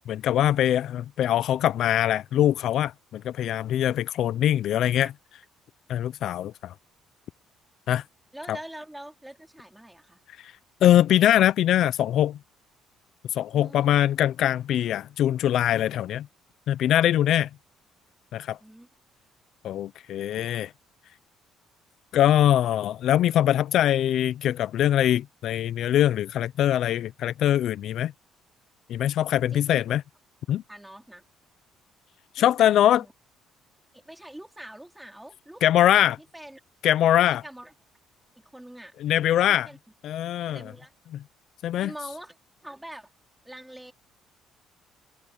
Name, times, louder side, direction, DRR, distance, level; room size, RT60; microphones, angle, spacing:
voice 1, 0.1-5.1 5.9-6.7 7.9-8.0 8.5-8.6 10.4-10.5 10.8-12.4 13.3-16.3 16.7-17.5 18.3-18.6 19.6-20.7 22.1-28.1 28.9-30.0 30.5-30.6 32.4-33.0 35.6-36.2 36.8-37.4 39.0-39.7 40.0-40.6 41.6-41.9, left 12 dB, 65° left, 0.4 m, -22 dB
voice 2, 8.3-10.2 13.5-14.0 18.6-18.9 29.5-29.8 30.7-31.2 32.4-33.1 33.9-35.6 35.9-36.6 37.3-37.7 38.4-38.9 39.5-39.8 40.4-40.9 41.8-43.1 43.4-43.9, right 1 dB, 5° right, 4.0 m, -44 dB
cardioid pair, 105°, 0 cm